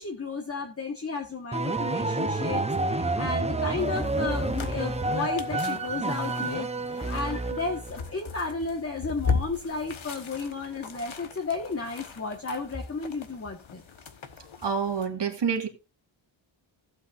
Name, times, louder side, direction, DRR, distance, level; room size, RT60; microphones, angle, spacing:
voice 1, 0.0-13.8, left 4 dB, 30° left, 1.4 m, -33 dB
sound 1, 1.5-8.0, right 2 dB, 15° right, 0.7 m, -29 dB
sound 2, 3.8-15.1, left 5 dB, 80° left, 1.2 m, -37 dB
voice 2, 14.6-15.7, right 6 dB, 60° right, 1.8 m, -27 dB
15.5 x 8.1 x 2.5 m
wide cardioid pair, 140°, 46 cm